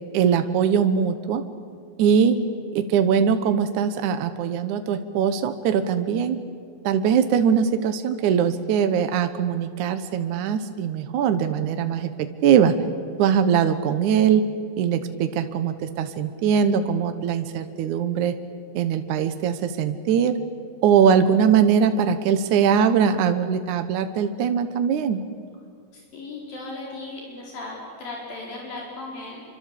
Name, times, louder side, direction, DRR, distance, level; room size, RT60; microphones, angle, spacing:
voice 1, 0.1-1.4 2.0-2.4 2.7-6.4 6.8-12.8 13.2-14.4 14.8-18.3 18.7-20.3 20.8-25.2, right 7 dB, 65° right, 9 dB, 2.3 m, -21 dB
voice 2, 25.9-29.4, left 2 dB, 70° left, -3 dB, 6.4 m, -37 dB
27.5 x 24.5 x 8.5 m, 2.3 s
omnidirectional pair, 4.1 m